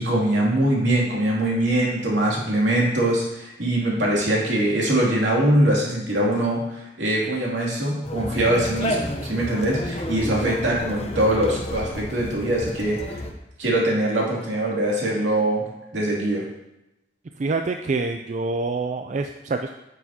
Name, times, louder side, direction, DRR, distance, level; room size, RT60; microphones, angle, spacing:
voice 1, 0.0-13.2 13.6-15.6 15.9-16.4, right 1 dB, 75° right, -4 dB, 2.7 m, -22 dB
Conversation, 8.0-13.3, left 1 dB, 35° left, 0.8 m, -31 dB
voice 2, 17.4-19.7, right 3 dB, 40° right, 5 dB, 0.4 m, -26 dB
8.9 x 7.9 x 2.9 m, 0.93 s
head